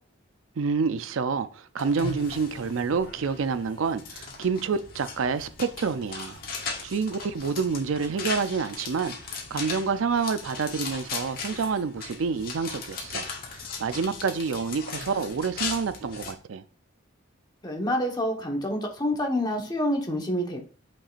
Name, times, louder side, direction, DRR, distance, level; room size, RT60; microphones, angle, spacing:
voice 1, 0.6-13.3 13.5-16.6, right 5 dB, 80° right, 0.5 m, -28 dB
sound 1, 1.8-16.3, left 4 dB, 45° left, 1.6 m, -38 dB
voice 2, 17.6-20.6, left 1 dB, 20° left, 1.2 m, -27 dB
8.6 x 5.4 x 2.5 m
head